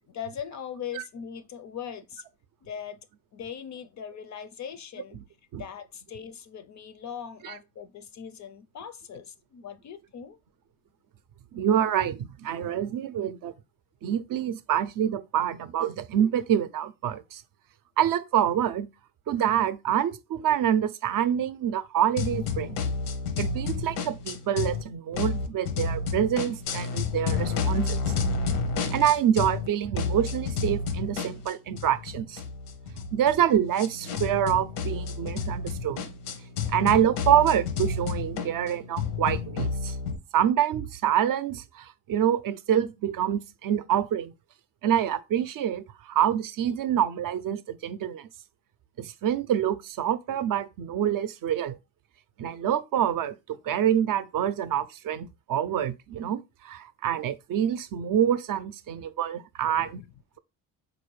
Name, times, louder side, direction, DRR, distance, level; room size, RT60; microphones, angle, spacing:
voice 1, 0.1-2.2 2.6-3.0 3.3-5.2 5.5-10.4 59.8-60.1, left 8 dB, 40° left, 0.4 m, -40 dB
voice 2, 11.5-13.5 14.0-17.4 18.0-18.9 19.3-22.8 23.4-28.0 28.9-32.4 33.1-36.0 36.7-40.0 40.3-44.3 44.8-48.3 49.0-51.8 52.4-60.0, right 10 dB, 50° right, 0.5 m, -26 dB
sound 1, 22.2-24.8 25.1-29.7 30.0-40.2, left 4 dB, 85° left, 0.7 m, -30 dB
4.0 x 2.6 x 3.1 m
supercardioid pair, 70°, 45 cm